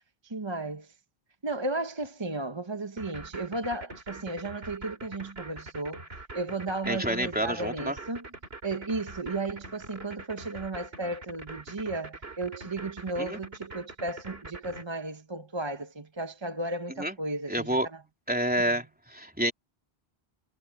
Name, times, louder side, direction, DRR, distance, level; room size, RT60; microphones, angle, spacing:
voice 1, 0.2-0.9 1.4-6.0 6.3-8.3 8.6-17.7 18.7-18.8, right 2 dB, 30° right, 1.0 m, -34 dB
sound 1, 3.0-14.8, right 3 dB, 75° right, 3.5 m, -43 dB
voice 2, 6.9-8.0 13.2-13.4 17.0-17.2 17.5-17.9 18.3-19.5, right 1 dB, 10° right, 3.1 m, -28 dB
omnidirectional pair, 1.0 m